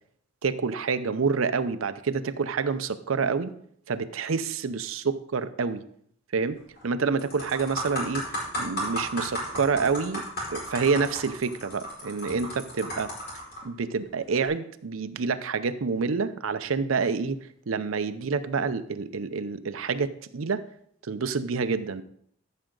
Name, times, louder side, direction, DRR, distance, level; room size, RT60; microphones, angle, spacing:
voice 1, 0.4-3.5 3.9-5.8 6.3-6.6 6.8-8.3 8.6-10.2 10.5-13.1 13.6-17.4 17.7-20.6 21.0-22.0, right 5 dB, 85° right, 11 dB, 0.6 m, -28 dB
sound 1, 6.6-6.8 7.2-13.6 14.3-14.5, equal, 50° left, 5.0 m, -34 dB
13.5 x 6.4 x 3.8 m, 0.67 s
head